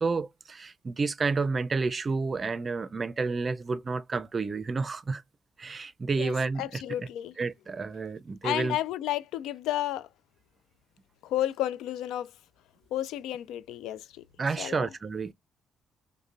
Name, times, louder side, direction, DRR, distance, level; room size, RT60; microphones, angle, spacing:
voice 1, 0.0-5.2 5.6-7.1 7.4-8.8 14.4-15.3, right 4 dB, 35° right, 0.5 m, -30 dB
voice 2, 6.2-7.3 8.4-10.1 11.2-12.3 12.9-14.2 14.6-14.9, left 13 dB, 90° left, 0.3 m, -32 dB
5.0 x 2.1 x 2.6 m
cardioid pair, 90°, 0 cm